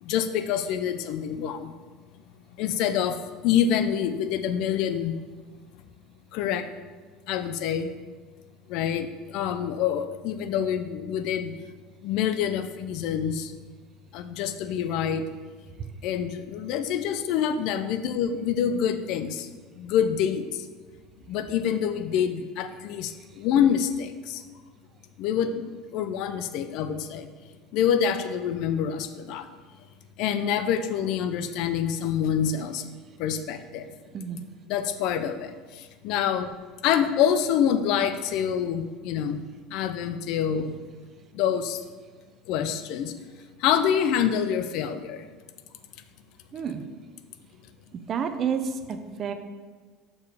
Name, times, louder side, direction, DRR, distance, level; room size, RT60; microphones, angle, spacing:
voice 1, 0.0-1.7 2.6-5.2 6.3-6.7 7.3-7.9 8.7-11.5 12.0-13.5 14.1-15.3 16.0-19.5 19.8-20.6 21.3-24.4 25.2-25.6 25.9-27.3 27.7-29.5 30.2-32.9 33.2-33.9 34.7-35.5 36.0-36.5 36.8-39.4 39.7-40.8 41.3-41.8 42.5-43.1 43.6-45.2, left 8 dB, 65° left, 10 dB, 0.5 m, -26 dB
voice 2, 46.5-46.8 48.1-49.3, right 7 dB, 40° right, 8 dB, 0.6 m, -29 dB
6.8 x 4.8 x 4.9 m, 1.4 s
supercardioid pair, 95°, 0 cm